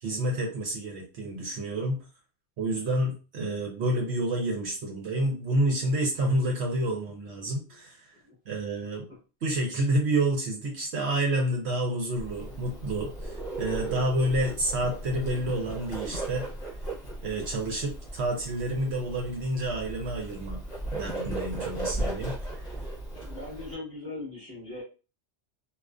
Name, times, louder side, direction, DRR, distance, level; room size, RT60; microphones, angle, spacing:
voice 1, 0.0-2.0 2.6-8.1 8.5-9.0 9.4-16.5 17.2-20.6 20.9-22.7, right 1 dB, 65° right, 0 dB, 0.8 m, -29 dB
Bird, 12.1-23.7, right 2 dB, 40° left, 0.9 m, -36 dB
voice 2, 23.2-24.8, left 2 dB, 25° right, -8 dB, 0.9 m, -40 dB
2.3 x 2.3 x 2.3 m, 0.34 s
omnidirectional pair, 1.3 m